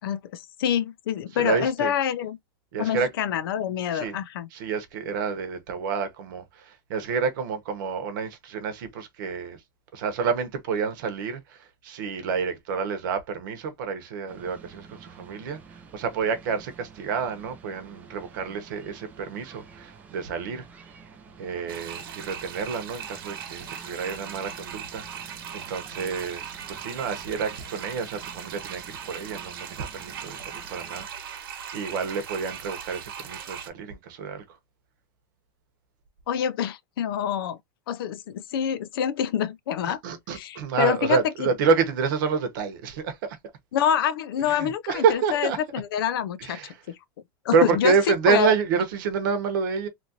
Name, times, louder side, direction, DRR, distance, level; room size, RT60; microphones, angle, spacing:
voice 1, 0.0-2.4 2.8-4.5 36.3-37.6 37.9-40.0 40.3-41.5 43.7-46.7 47.4-47.9 48.3-48.5, left 9 dB, 85° left, 0.5 m, -26 dB
voice 2, 1.4-1.9 2.7-3.1 3.9-4.2 4.5-9.6 9.9-20.7 21.4-34.6 39.8-43.4 44.5-45.6 46.4-46.8 47.5-49.9, right 5 dB, 65° right, 0.9 m, -28 dB
sound 1, 14.3-31.1, right 5 dB, 15° right, 0.4 m, -49 dB
sound 2, 21.7-33.7, right 8 dB, 90° right, 1.1 m, -39 dB
3.0 x 2.5 x 2.7 m
supercardioid pair, 160°, 12 cm